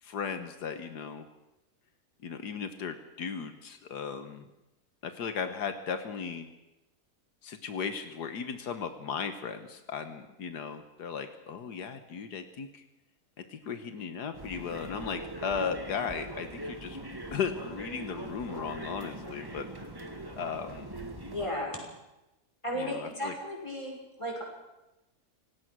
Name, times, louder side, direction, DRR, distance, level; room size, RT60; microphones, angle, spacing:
voice 1, 0.0-1.3 2.2-4.4 5.0-6.5 7.4-12.8 13.4-17.0 17.3-19.7 20.4-20.9 22.8-23.4, left 6 dB, 85° left, 9 dB, 1.8 m, -36 dB
sound 1, 14.3-21.5, right 1 dB, 15° right, 1.9 m, -42 dB
voice 2, 21.3-21.8 22.6-24.4, equal, 20° left, -1 dB, 6.0 m, -35 dB
26.5 x 18.0 x 6.2 m, 0.96 s
omnidirectional pair, 1.7 m